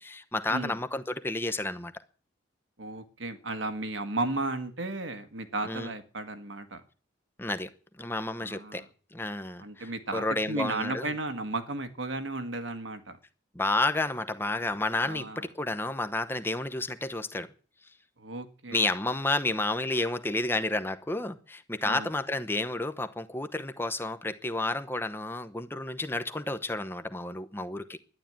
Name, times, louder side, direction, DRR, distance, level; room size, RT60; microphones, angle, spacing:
voice 1, 0.0-1.9 5.6-5.9 7.4-7.7 8.0-8.8 9.1-11.1 13.5-17.5 18.7-28.0, left 2 dB, 10° left, 0.8 m, -31 dB
voice 2, 2.8-6.8 8.4-8.9 9.6-13.2 15.0-15.5 18.2-18.8 21.8-22.1, right 2 dB, 80° right, 1.7 m, -34 dB
11.5 x 11.0 x 8.8 m
head